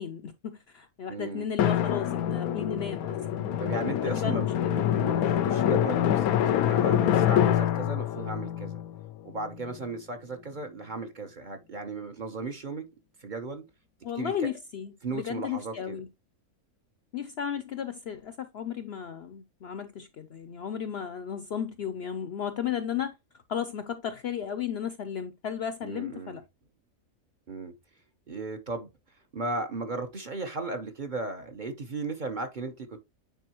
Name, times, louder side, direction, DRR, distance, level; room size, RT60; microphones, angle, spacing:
voice 1, 0.0-3.5 4.1-4.8 14.0-16.1 17.1-23.1 23.5-26.4, left 8 dB, 60° left, 0.7 m, -34 dB
voice 2, 1.1-1.5 3.6-4.5 4.7-8.8 9.2-12.9 13.2-13.6 14.2-14.5 15.0-16.0 25.8-26.4 27.5-27.7 28.3-28.9 29.3-33.0, right 3 dB, 40° right, 0.9 m, -36 dB
Drum, 1.6-9.9, left 10 dB, 90° left, 1.1 m, -26 dB
9.1 x 4.1 x 2.9 m
omnidirectional pair, 1.5 m